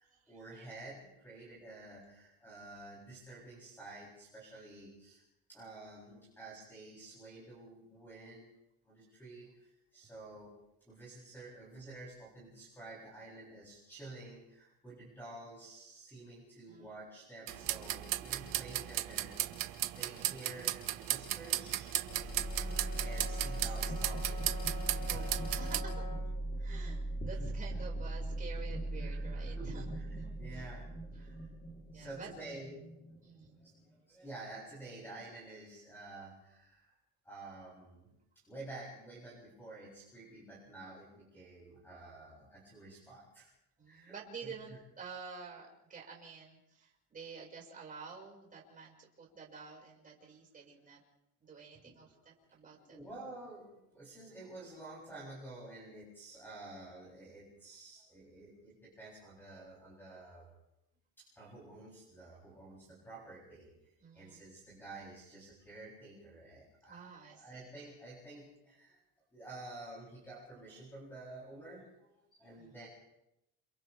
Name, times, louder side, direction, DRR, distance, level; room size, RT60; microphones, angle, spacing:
voice 1, 0.0-5.2 5.5-8.5 8.8-10.5 10.8-19.3 19.6-22.1 22.5-24.5 24.9-25.3 26.6-26.9 27.4-27.5 29.0-30.0 30.4-31.5 31.9-32.9 33.6-37.0 37.2-38.1 38.4-43.5 43.9-44.1 44.4-44.8 50.8-50.9 51.8-52.2 52.6-60.5 61.2-69.0 69.3-72.9, right 2 dB, 5° left, -5 dB, 7.9 m, -50 dB
sound 1, 17.5-25.8, right 14 dB, 65° right, 1.6 m, -36 dB
sound 2, 22.0-33.9, right 1 dB, 25° left, 3.7 m, -39 dB
Brass instrument, 22.1-26.4, left 5 dB, 40° left, 6.6 m, -48 dB
voice 2, 25.1-26.1 26.6-30.7 31.2-31.3 31.9-32.3 33.2-33.6 43.8-51.0 51.4-53.0 64.0-64.4 66.9-67.7 72.3-72.7, right 5 dB, 20° right, -2 dB, 5.7 m, -50 dB
29.5 x 27.5 x 3.5 m, 0.85 s
cardioid pair, 170°, 36 cm